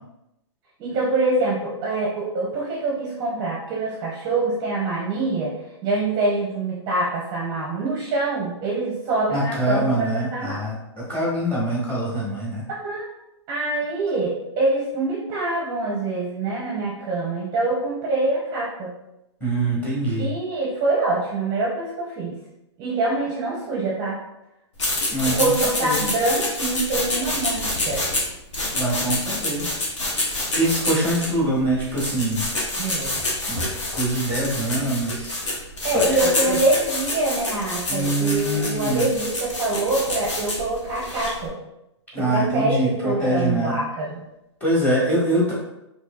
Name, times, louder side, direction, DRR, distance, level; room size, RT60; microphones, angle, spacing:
voice 1, 0.8-5.5 5.8-10.6 12.7-13.1 13.5-18.9 20.2-22.4 22.8-24.2 25.3-28.0 32.8-33.2 35.8-41.5 42.1-44.2, right 2 dB, 25° right, -3 dB, 0.6 m, -25 dB
voice 2, 9.3-12.6 19.4-20.3 25.1-25.5 25.8-26.0 28.8-29.7 30.5-32.5 33.5-33.6 33.9-35.4 35.9-36.5 37.9-39.1 42.1-43.7 44.6-45.5, right 1 dB, 10° left, -6 dB, 1.3 m, -24 dB
sound 1, 24.8-41.5, left 2 dB, 80° left, 1.3 m, -27 dB
4.5 x 2.9 x 2.2 m, 0.87 s
hypercardioid pair, 145°, 15 cm